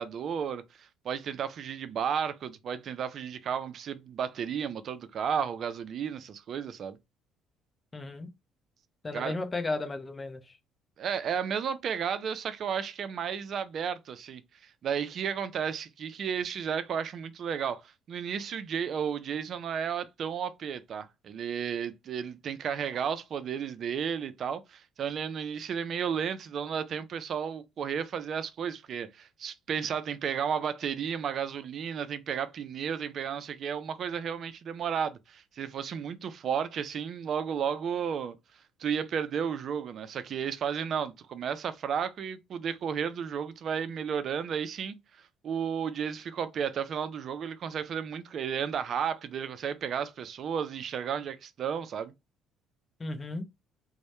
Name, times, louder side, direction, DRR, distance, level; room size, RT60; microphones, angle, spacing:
voice 1, 0.0-7.0 9.1-9.4 11.0-14.4 14.8-38.4 38.8-45.0 45.4-52.1, right 7 dB, 55° right, 0.3 m, -33 dB
voice 2, 7.9-8.3 9.0-10.6 53.0-53.4, left 2 dB, 25° left, 0.5 m, -34 dB
2.1 x 2.0 x 2.9 m
supercardioid pair, 85°, 0 cm